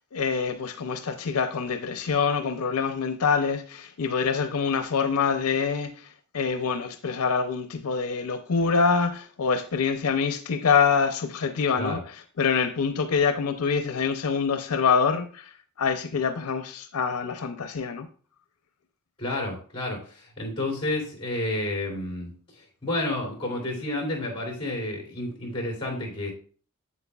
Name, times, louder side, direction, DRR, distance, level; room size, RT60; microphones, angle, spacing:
voice 1, 0.1-18.1, left 5 dB, 85° left, 0.6 m, -25 dB
voice 2, 19.2-26.3, left 1 dB, 25° left, 2.9 m, -30 dB
8.1 x 7.5 x 2.3 m
head